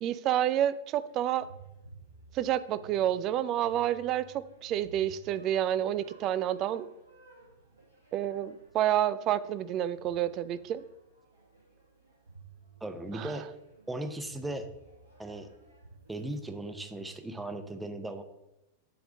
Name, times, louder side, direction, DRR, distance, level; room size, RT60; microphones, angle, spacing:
voice 1, 0.0-1.5 2.3-6.9 8.1-10.8 13.1-13.3, right 11 dB, 35° right, 15 dB, 0.4 m, -29 dB
sound 1, 1.0-17.2, right 4 dB, 80° right, 2.3 m, -55 dB
voice 2, 12.8-13.5 13.9-14.7 15.2-15.5 16.1-18.2, right 1 dB, 5° right, 7 dB, 0.8 m, -37 dB
8.5 x 3.5 x 6.6 m, 0.90 s
figure-of-eight pair, 90°, 0 cm